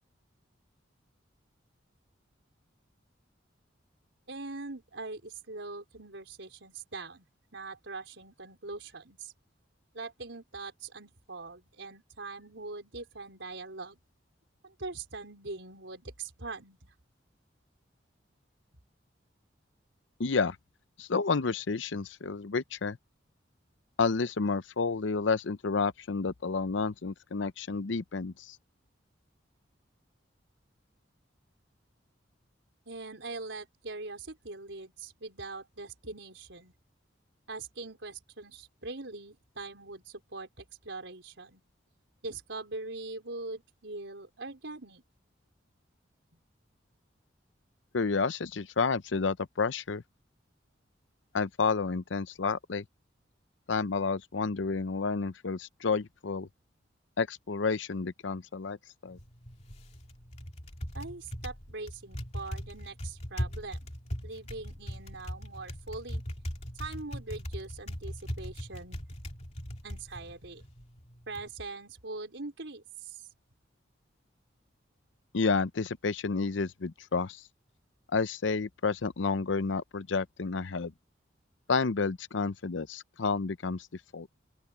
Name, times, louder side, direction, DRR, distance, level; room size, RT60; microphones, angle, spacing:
voice 1, 4.3-7.2 7.5-9.3 9.9-14.0 14.6-16.9 32.9-36.7 37.5-41.6 42.2-45.0 60.9-63.9 64.2-66.2 66.7-69.0 69.8-70.6 71.3-73.3, right 3 dB, 80° right, 4.4 m, -42 dB
voice 2, 20.2-20.6 21.0-23.0 24.0-28.6 47.9-50.0 51.3-52.8 53.7-56.5 57.2-58.8 59.0-59.2 75.3-77.4 78.1-80.9 81.7-83.9 84.1-84.3, left 4 dB, 80° left, 0.7 m, -30 dB
Typing, 59.1-71.5, equal, 35° left, 2.7 m, -40 dB
open air
head